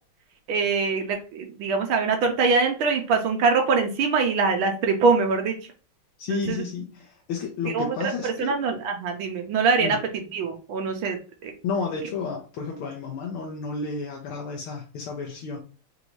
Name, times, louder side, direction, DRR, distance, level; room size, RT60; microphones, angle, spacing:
voice 1, 0.5-5.6 6.3-6.6 7.6-10.0 10.3-11.5, right 4 dB, 80° right, 4 dB, 1.6 m, -23 dB
voice 2, 6.2-8.6 9.8-10.0 11.6-15.6, left 4 dB, 80° left, -1 dB, 1.7 m, -31 dB
4.7 x 2.6 x 3.0 m, 0.36 s
omnidirectional pair, 2.3 m